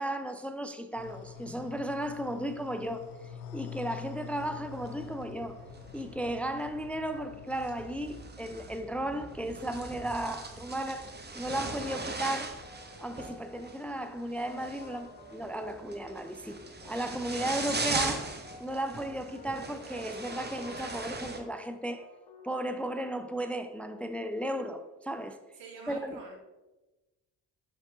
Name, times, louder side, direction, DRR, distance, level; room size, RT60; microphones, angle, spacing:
voice 1, 0.0-5.6 5.9-12.6 13.0-16.6 16.8-18.3 18.6-22.1 22.4-25.4 25.9-26.2, right 1 dB, 5° left, 0.6 m, -35 dB
sound 1, 1.0-7.9, left 8 dB, 90° left, 0.7 m, -46 dB
sound 2, 4.4-21.4, right 3 dB, 20° right, 1.3 m, -40 dB
sound 3, 11.0-22.6, left 4 dB, 60° left, 1.5 m, -51 dB
voice 2, 25.6-26.4, right 4 dB, 70° right, 2.1 m, -46 dB
8.0 x 6.2 x 3.7 m
hypercardioid pair, 45°, 45 cm